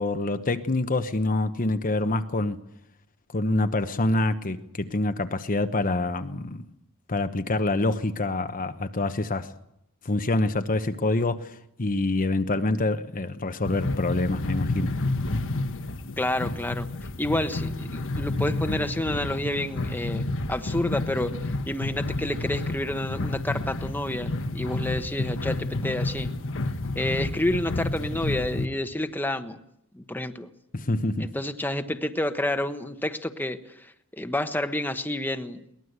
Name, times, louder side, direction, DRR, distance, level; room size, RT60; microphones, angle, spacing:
voice 1, 0.0-2.6 3.3-6.6 7.1-9.5 10.0-15.0 30.7-31.3, left 2 dB, 40° left, 1.0 m, -26 dB
sound 1, 13.6-28.6, left 2 dB, 60° left, 1.4 m, -30 dB
voice 2, 16.2-16.9 17.2-21.3 21.7-26.3 26.9-29.6 29.9-30.5 31.2-35.6, left 1 dB, 10° left, 1.2 m, -29 dB
22.5 x 19.5 x 8.1 m
head